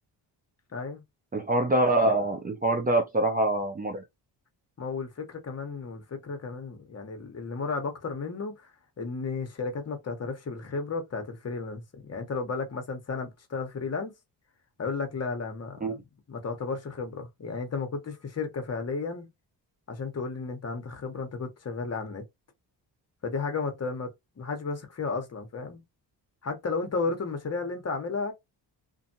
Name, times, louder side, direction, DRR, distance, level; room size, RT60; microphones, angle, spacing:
voice 1, 0.7-1.0 4.8-8.7 9.0-14.1 14.8-16.0 16.3-19.3 19.9-22.2 23.2-24.1 24.4-25.8 26.4-28.3, left 4 dB, 35° left, 1.0 m, -33 dB
voice 2, 1.3-4.0 15.8-15.9, right 1 dB, 20° right, 0.5 m, -25 dB
2.6 x 2.5 x 2.7 m
cardioid pair, 100°, 42 cm